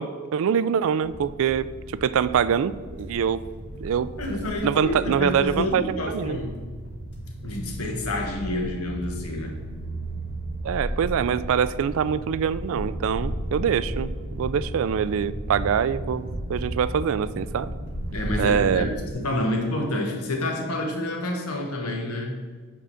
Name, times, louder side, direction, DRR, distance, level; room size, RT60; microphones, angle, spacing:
voice 1, 0.0-3.4 3.8-4.1 4.6-6.4 10.6-17.7 18.4-19.0, right 7 dB, 65° right, 16 dB, 0.3 m, -24 dB
sound 1, 1.0-19.1, equal, 55° left, 1.8 m, -34 dB
voice 2, 4.2-6.5 7.4-9.5 18.1-22.3, left 1 dB, 85° left, 2 dB, 1.4 m, -28 dB
9.0 x 3.8 x 6.9 m, 1.5 s
head